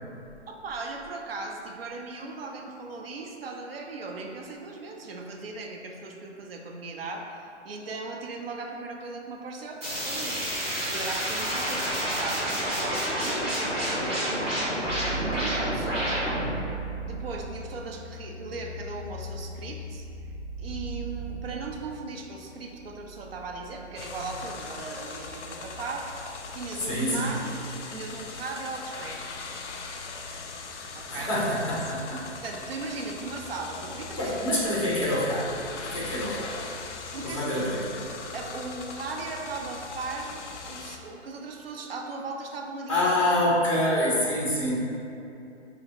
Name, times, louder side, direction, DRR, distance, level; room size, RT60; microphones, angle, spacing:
voice 1, 0.5-7.4 7.6-10.5 10.9-14.6 15.3-16.3 17.0-20.3 20.6-26.1 26.5-29.5 30.9-31.3 32.4-34.6 37.1-37.6 38.3-43.0, right 3 dB, 55° right, 1 dB, 0.4 m, -38 dB
sound 1, 9.8-16.5, equal, 25° right, 0.8 m, -29 dB
sound 2, 14.8-24.4, right 3 dB, 85° right, 0.9 m, -38 dB
sound 3, 24.0-41.0, left 4 dB, 75° left, 0.5 m, -40 dB
voice 2, 26.8-27.4 31.1-32.2 34.2-36.7 37.2-38.0 42.9-44.7, left 1 dB, 25° left, -6 dB, 0.7 m, -26 dB
4.1 x 2.7 x 2.9 m, 2.7 s
hypercardioid pair, 175°, 36 cm